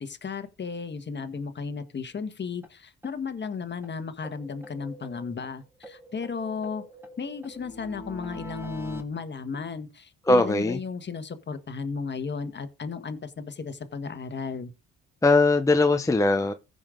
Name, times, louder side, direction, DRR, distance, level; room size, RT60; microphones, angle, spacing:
voice 1, 0.0-6.8 7.2-14.7, left 5 dB, 35° left, 1.5 m, -34 dB
sound 1, 2.6-2.7 3.0-3.1 3.4-3.5 3.8-3.9 4.2-5.5 5.8-9.0, equal, 5° right, 2.4 m, -43 dB
voice 2, 10.3-10.8 15.2-16.5, left 2 dB, 10° left, 0.7 m, -20 dB
15.5 x 5.4 x 3.8 m
cardioid pair, 90°, 30 cm